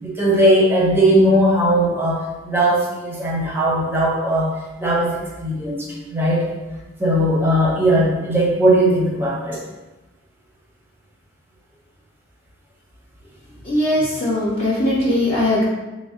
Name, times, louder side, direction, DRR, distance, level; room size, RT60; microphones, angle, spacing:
voice 1, 0.0-4.5 4.8-5.8 6.1-6.5 7.0-9.6, right 1 dB, 10° right, -3 dB, 0.6 m, -18 dB
voice 2, 13.6-15.6, left 1 dB, 30° left, -8 dB, 0.6 m, -19 dB
3.7 x 2.1 x 3.6 m, 1.1 s
head